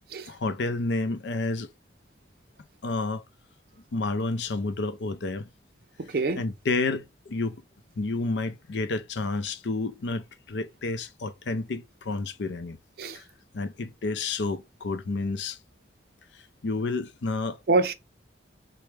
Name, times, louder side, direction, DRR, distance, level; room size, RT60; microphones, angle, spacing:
voice 1, 0.3-1.7 2.8-3.2 3.9-5.5 6.3-7.6 8.0-12.8 13.1-13.2 13.5-15.6 16.6-17.6, left 3 dB, 80° left, 0.5 m, -30 dB
voice 2, 6.0-6.4 13.0-13.2 17.7-17.9, right 3 dB, 55° right, 0.5 m, -25 dB
4.4 x 2.1 x 3.2 m
head